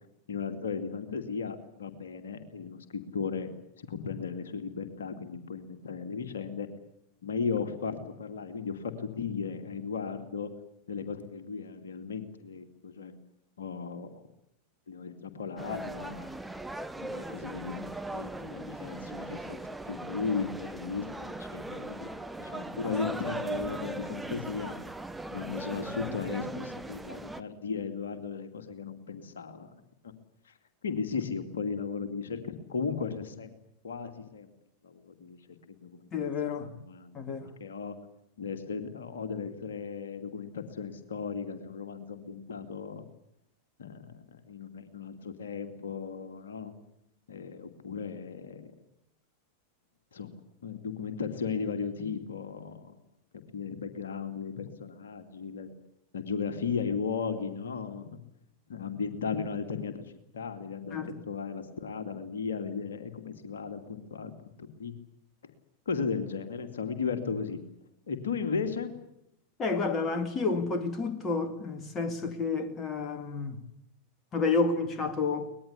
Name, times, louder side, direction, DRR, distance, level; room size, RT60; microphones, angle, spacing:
voice 1, 0.3-2.8 3.1-3.5 3.8-6.7 7.2-10.5 10.9-13.1 13.6-14.2 14.9-16.3 17.0-19.6 19.8-22.1 22.4-24.7 25.3-29.7 30.0-30.1 30.5-30.6 30.8-33.5 33.8-34.5 34.8-35.4 35.7-36.1 36.8-37.1 37.6-38.0 38.4-43.0 43.8-44.1 44.5-46.7 47.3-48.7 50.1-50.3 50.6-53.0 53.5-55.7 56.1-58.2 58.7-60.0 60.3-64.3 64.6-64.9 65.4-65.5 65.9-67.6 68.1-68.9, left 5 dB, 65° left, 2.5 m, -36 dB
sound 1, 15.6-27.4, right 2 dB, 5° right, 1.1 m, -39 dB
voice 2, 36.1-36.8 37.1-37.5 60.9-61.2 69.6-73.6 74.3-75.5, left 4 dB, 25° left, 2.4 m, -30 dB
24.0 x 20.0 x 8.4 m
figure-of-eight pair, 90°, 0 cm